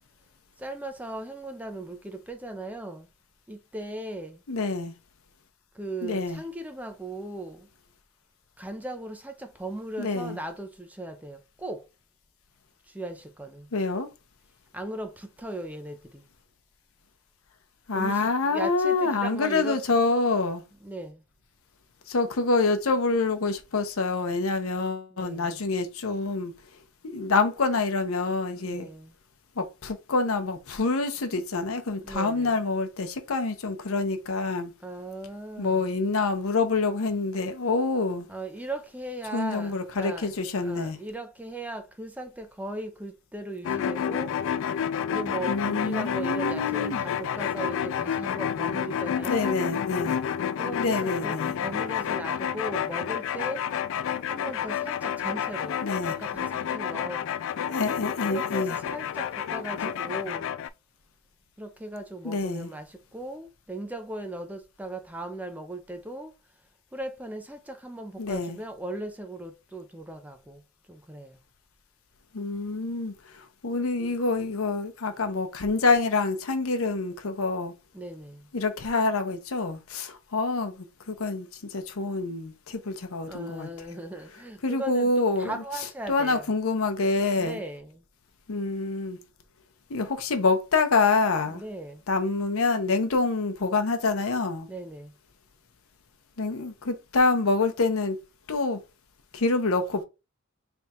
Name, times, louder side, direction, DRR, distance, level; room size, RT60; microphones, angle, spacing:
voice 1, 0.6-3.1 3.5-4.4 5.7-7.7 8.6-11.9 12.9-13.7 14.7-16.2 17.9-19.8 20.8-21.2 25.1-25.6 28.6-29.1 32.0-32.6 34.8-35.9 38.3-40.3 40.6-44.4 45.1-49.6 50.6-53.7 54.2-55.8 56.1-57.3 58.3-60.5 61.6-66.3 66.9-70.6 70.9-71.4 77.9-78.5 83.3-86.5 87.4-88.0 91.5-92.0 94.7-95.1, right 1 dB, 5° right, 0.5 m, -38 dB
voice 2, 4.5-4.9 6.0-6.4 10.0-10.4 13.7-14.1 17.9-20.6 22.1-26.5 27.0-28.9 29.6-34.7 35.6-38.3 39.3-41.0 45.5-47.0 49.2-50.2 50.7-51.5 55.8-56.1 57.7-58.8 59.8-59.9 62.2-62.7 68.2-68.6 72.3-77.7 78.5-83.7 84.6-85.5 86.1-87.6 88.5-89.2 89.9-91.6 92.1-94.7 96.4-98.2 98.5-98.8 99.3-100.0, left 3 dB, 80° left, 0.7 m, -26 dB
sound 1, 43.6-60.7, left 8 dB, 65° left, 0.3 m, -30 dB
3.4 x 2.3 x 4.2 m
head